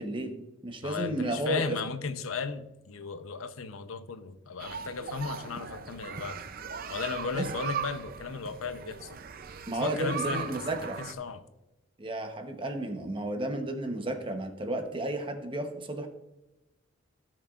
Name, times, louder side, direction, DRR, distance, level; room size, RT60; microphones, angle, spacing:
voice 1, 0.0-1.8 7.3-7.5 9.7-11.0 12.0-16.1, right 1 dB, 25° right, 6 dB, 0.9 m, -33 dB
voice 2, 0.8-6.4 6.9-9.2 9.8-11.4, left 5 dB, 90° left, 10 dB, 0.7 m, -36 dB
sound 1, 4.6-11.1, right 6 dB, 45° right, 0.5 m, -39 dB
17.0 x 6.0 x 2.4 m, 1.0 s
head